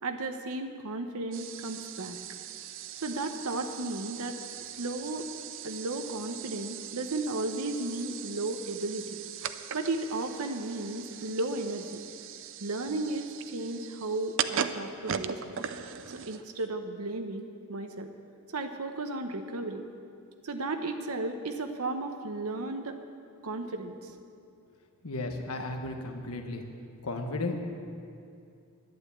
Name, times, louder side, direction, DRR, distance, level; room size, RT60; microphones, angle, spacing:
voice 1, 0.0-2.2 3.0-4.4 4.7-5.3 5.6-9.2 9.7-12.0 12.6-15.6 16.1-17.4 17.7-18.1 18.5-19.8 20.4-23.0 23.4-24.1, right 2 dB, 80° right, 6 dB, 0.9 m, -34 dB
sound 1, 1.3-16.7, right 8 dB, 60° right, 0.6 m, -39 dB
voice 2, 25.0-26.6 27.0-27.6, left 2 dB, 85° left, 4 dB, 1.3 m, -34 dB
11.5 x 9.7 x 8.6 m, 2.5 s
head